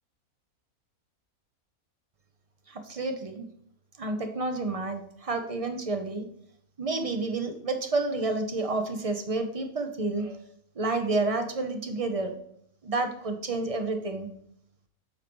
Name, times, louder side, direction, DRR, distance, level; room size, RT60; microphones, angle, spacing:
voice 1, 2.7-3.5 4.0-6.2 6.8-10.4 10.8-12.3 12.8-14.3, right 3 dB, 40° right, 6 dB, 0.5 m, -30 dB
8.3 x 5.7 x 3.0 m, 0.68 s
omnidirectional pair, 1.6 m